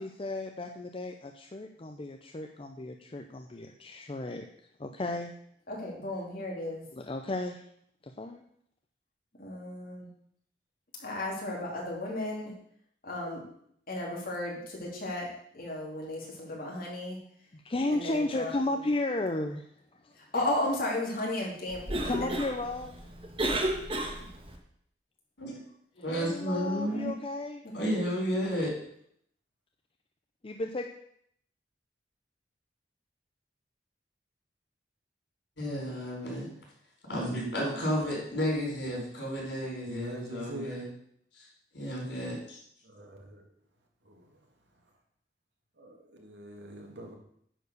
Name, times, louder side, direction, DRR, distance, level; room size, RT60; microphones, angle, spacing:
voice 1, 0.0-4.4 4.8-5.3 6.9-7.6 8.0-8.4 17.5-19.7 19.9-20.1 22.0-23.0 26.1-27.6 30.4-30.9, left 2 dB, 30° left, 4 dB, 0.6 m, -34 dB
voice 2, 5.7-6.9 9.4-10.1 11.0-12.5 13.0-13.4 13.9-17.2 17.9-18.8 20.1-22.4 24.2-24.3 26.9-27.0 27.6-28.0, left 1 dB, 55° left, -3 dB, 3.2 m, -35 dB
Cough, 21.7-24.6, right 1 dB, 30° right, 1.4 m, -33 dB
voice 3, 26.0-27.1 27.7-28.7 35.6-36.5 37.1-40.9 41.3-41.5 41.7-42.6, equal, 80° left, -2 dB, 4.6 m, -32 dB
voice 4, 39.9-40.8 42.8-43.5 44.0-44.4 45.8-47.1, equal, 80° right, 1 dB, 2.2 m, -43 dB
10.0 x 4.7 x 6.5 m, 0.68 s
head